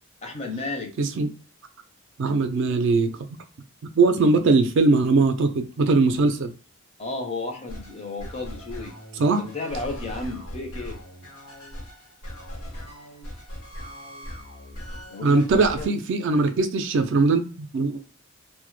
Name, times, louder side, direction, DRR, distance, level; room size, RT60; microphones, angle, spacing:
voice 1, 0.2-0.9 7.0-11.0 15.1-15.4 15.8-15.9, left 3 dB, 30° left, 3 dB, 0.4 m, -33 dB
voice 2, 1.0-1.3 2.2-3.1 3.9-6.5 9.2-9.4 15.2-18.0, right 3 dB, 55° right, 7 dB, 0.3 m, -20 dB
sound 1, 7.7-15.9, equal, 85° left, 1.0 m, -39 dB
2.1 x 2.0 x 3.0 m, 0.35 s
head